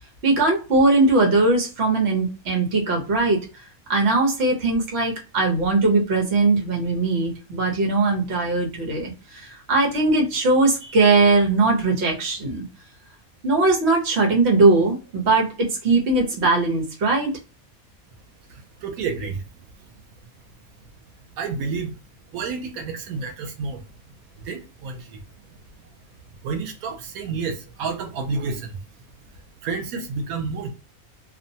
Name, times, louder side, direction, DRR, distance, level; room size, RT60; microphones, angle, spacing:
voice 1, 0.2-3.4 3.9-12.6 13.4-17.4, right 3 dB, 55° right, 1.0 m, -20 dB
voice 2, 18.5-19.4 21.4-21.9 22.3-23.8 24.3-25.2 26.4-28.8 29.6-30.7, right 4 dB, 85° right, 1.0 m, -30 dB
2.6 x 2.1 x 2.7 m
omnidirectional pair, 1.5 m